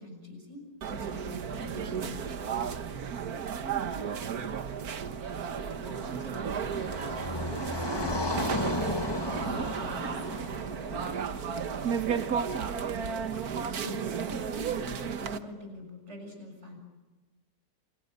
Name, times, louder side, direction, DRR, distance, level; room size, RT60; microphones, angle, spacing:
voice 1, 0.0-2.6 3.0-3.1 13.7-16.8, left 1 dB, 40° right, 4 dB, 7.2 m, -44 dB
sound 1, 0.8-15.4, right 7 dB, 60° right, 1.7 m, -33 dB
Car passing by, 5.1-12.3, left 2 dB, 15° left, 1.6 m, -35 dB
voice 2, 5.2-8.6 10.2-10.5, right 2 dB, 85° right, 1 dB, 3.7 m, -49 dB
Acoustic guitar, 10.0-15.2, right 1 dB, 5° right, 6.8 m, -53 dB
29.5 x 28.0 x 6.7 m, 1.2 s
omnidirectional pair, 1.8 m